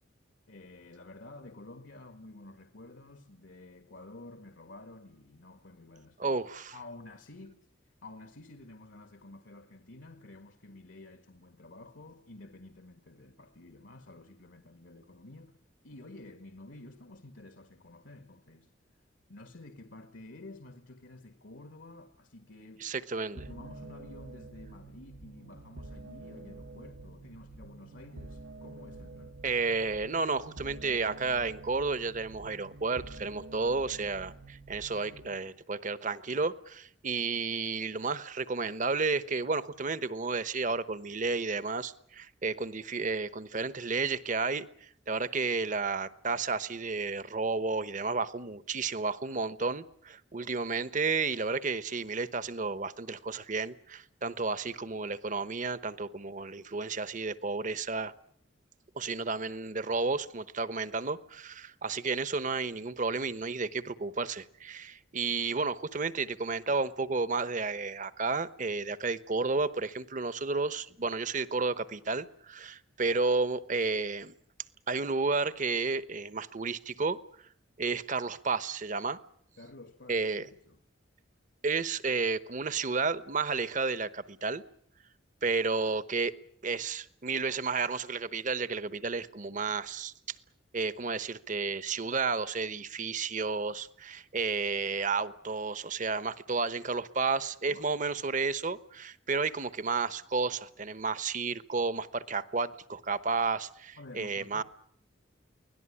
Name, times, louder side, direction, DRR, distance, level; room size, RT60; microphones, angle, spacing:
voice 1, 0.5-6.4 6.7-7.7 8.0-15.6 15.8-18.7 19.3-22.9 23.3-29.3 79.6-80.8 97.7-98.3 104.0-104.6, left 2 dB, 70° left, 1.7 m, -50 dB
voice 2, 6.2-6.7 22.8-23.4 29.4-44.7 45.1-58.1 58.9-74.3 74.9-77.2 77.8-79.2 80.1-80.5 81.6-84.6 85.4-86.3 86.6-90.4 90.7-104.6, right 4 dB, 40° right, 1.0 m, -32 dB
sound 1, 23.4-35.4, right 2 dB, 85° right, 1.6 m, -48 dB
24.0 x 18.0 x 9.9 m
head